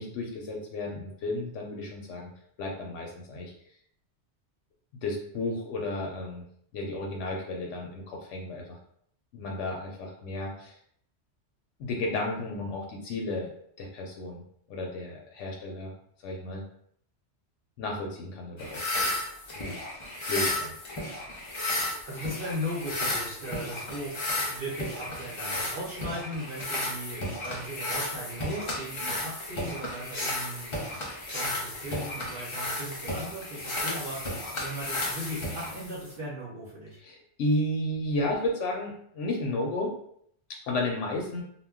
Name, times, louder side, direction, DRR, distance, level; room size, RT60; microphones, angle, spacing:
voice 1, 0.0-2.3 2.6-3.5 5.0-6.4 6.7-8.8 9.3-10.8 11.8-13.5 13.8-15.9 16.2-16.6 17.8-18.9 19.6-19.8 20.3-20.7 37.0-39.9 40.7-41.4, left 2 dB, 80° left, 0 dB, 0.9 m, -33 dB
sound 1, 18.6-36.2, left 1 dB, 40° left, 0.4 m, -33 dB
voice 2, 22.0-37.0, equal, 55° right, -6 dB, 0.8 m, -38 dB
2.1 x 2.1 x 3.5 m, 0.67 s
omnidirectional pair, 1.2 m